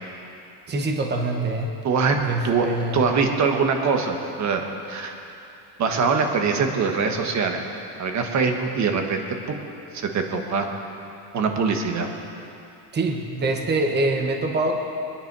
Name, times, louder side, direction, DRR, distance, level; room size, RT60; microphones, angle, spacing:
voice 1, 0.7-1.7 2.2-3.0 12.9-14.8, right 2 dB, 25° right, 3 dB, 1.1 m, -24 dB
voice 2, 1.8-2.2 2.4-2.7 2.9-5.2 5.8-7.6 8.0-9.2 9.5-9.6 9.9-10.7 11.3-12.1, right 5 dB, 40° right, 4 dB, 1.5 m, -23 dB
21.5 x 10.5 x 4.8 m, 2.8 s
cardioid pair, 150°, 45 cm